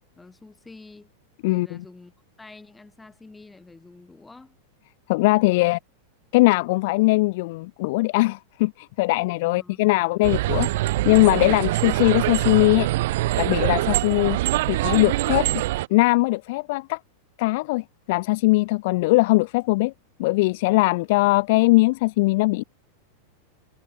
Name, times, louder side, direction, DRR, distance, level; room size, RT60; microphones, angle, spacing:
voice 1, 0.2-1.1 1.5-2.1 2.4-4.6 9.4-10.3, left 3 dB, 10° left, 7.8 m, -48 dB
voice 2, 1.4-1.8 5.1-5.8 6.3-12.9 13.4-14.4 14.7-15.5 15.9-17.0 17.4-19.9 20.2-22.6, left 22 dB, 50° left, 0.5 m, -20 dB
sound 1, 10.2-15.9, right 17 dB, 55° right, 0.7 m, -24 dB
figure-of-eight pair, 90°, 0 cm